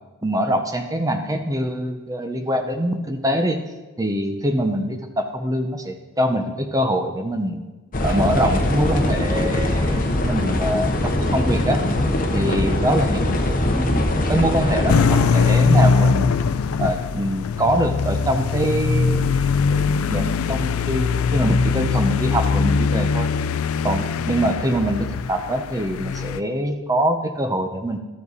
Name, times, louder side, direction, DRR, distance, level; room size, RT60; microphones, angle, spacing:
voice 1, 0.2-3.6 4.0-7.6 8.0-11.8 12.3-13.3 13.7-16.5 16.8-23.3 23.8-28.0, equal, 15° right, 5 dB, 0.7 m, -24 dB
sound 1, 7.9-15.5, left 1 dB, 40° left, 0.9 m, -22 dB
sound 2, 14.9-26.4, left 5 dB, 75° left, 0.4 m, -21 dB
12.0 x 7.4 x 4.1 m, 1.2 s
head